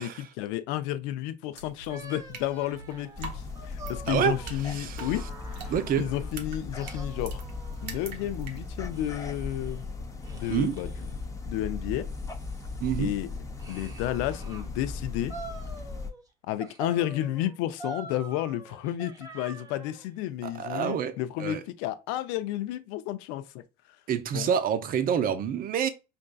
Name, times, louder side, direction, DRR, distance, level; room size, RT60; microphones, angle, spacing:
voice 1, 0.0-5.2 5.5-5.7 6.0-7.4 7.8-9.9 10.3-10.9 11.4-12.1 13.0-13.3 13.7-15.3 16.5-23.6 24.3-24.5, left 13 dB, 65° left, 0.6 m, -32 dB
sound 1, 1.6-9.0, right 4 dB, 80° right, 0.9 m, -45 dB
sound 2, 1.9-6.3 6.8-8.3 8.9-9.8 10.2-11.2 11.8-14.7 15.3-16.3 16.6-20.0, right 2 dB, 15° right, 1.0 m, -46 dB
sound 3, 3.2-16.1, left 3 dB, 15° left, 0.7 m, -38 dB
voice 2, 4.1-4.4 4.6-5.1 5.7-6.1 10.5-10.8 12.8-13.1 20.4-21.6 24.1-25.9, right 8 dB, 45° right, 0.7 m, -28 dB
5.2 x 2.6 x 2.3 m
hypercardioid pair, 85°, 21 cm